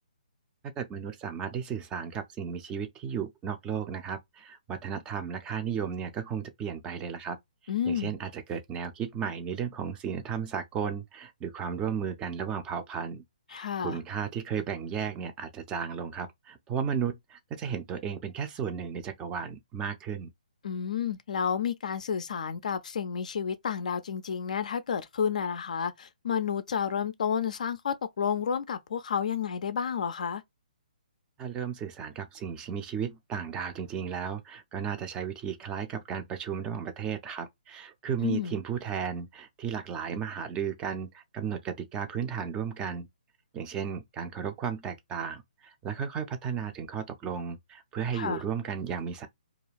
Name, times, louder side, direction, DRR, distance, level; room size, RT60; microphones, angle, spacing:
voice 1, 0.8-7.4 7.9-13.2 13.5-20.3 31.4-43.1 43.5-49.3, right 7 dB, 15° right, 0.4 m, -34 dB
voice 2, 7.7-8.1 13.5-14.0 20.6-30.4 38.2-38.6 48.1-48.4, left 7 dB, 55° left, 0.3 m, -31 dB
2.4 x 2.3 x 3.1 m
figure-of-eight pair, 135°, 5 cm